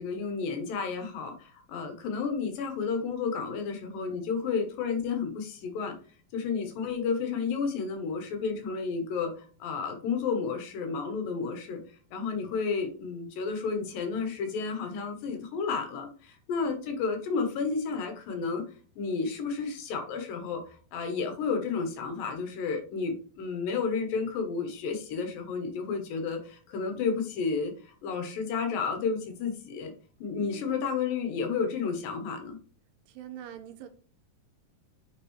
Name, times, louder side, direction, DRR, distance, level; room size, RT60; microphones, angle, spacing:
voice 1, 0.0-5.9 6.3-11.8 12.1-18.6 19.0-29.9 30.2-32.6, left 5 dB, 80° left, 2.8 m, -31 dB
voice 2, 16.6-17.0 30.4-30.9 33.1-33.9, right 11 dB, 85° right, 2.3 m, -44 dB
8.8 x 3.5 x 3.1 m
omnidirectional pair, 4.0 m